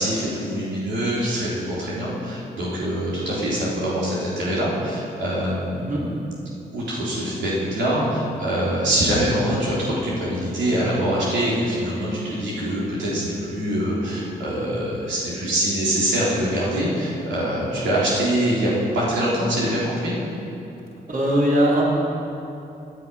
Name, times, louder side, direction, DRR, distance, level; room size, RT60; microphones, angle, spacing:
voice 1, 0.0-6.1 6.7-20.1, right 1 dB, 85° right, -7 dB, 3.5 m, -24 dB
voice 2, 21.1-21.9, equal, 50° right, -4 dB, 3.8 m, -20 dB
17.0 x 9.9 x 5.7 m, 2.8 s
supercardioid pair, 55°, 19 cm